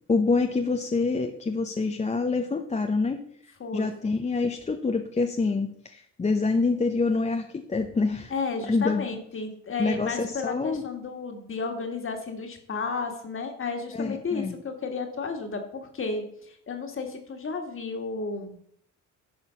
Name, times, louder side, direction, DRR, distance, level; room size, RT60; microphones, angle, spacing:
voice 1, 0.1-3.2 3.7-8.3 8.7-9.0 9.8-10.8 13.9-14.5, left 3 dB, 25° left, 5 dB, 0.7 m, -26 dB
voice 2, 8.3-18.6, left 4 dB, 45° left, 4 dB, 1.9 m, -33 dB
11.0 x 4.4 x 5.8 m, 0.68 s
cardioid pair, 90°, 30 cm